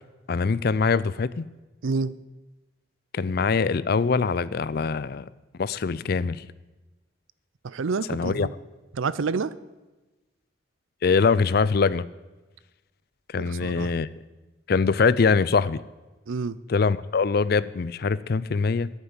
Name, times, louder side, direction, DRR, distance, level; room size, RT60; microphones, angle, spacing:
voice 1, 0.3-1.5 3.1-5.3 5.6-6.5 8.1-8.5 11.0-12.0 13.3-14.1 14.7-15.8 16.7-18.9, left 5 dB, 50° left, 18 dB, 0.4 m, -23 dB
voice 2, 1.8-2.2 7.6-8.5 8.9-9.5 13.4-13.9 16.3-16.6, right 4 dB, 80° right, 18 dB, 0.5 m, -28 dB
10.5 x 9.1 x 8.7 m, 1.1 s
head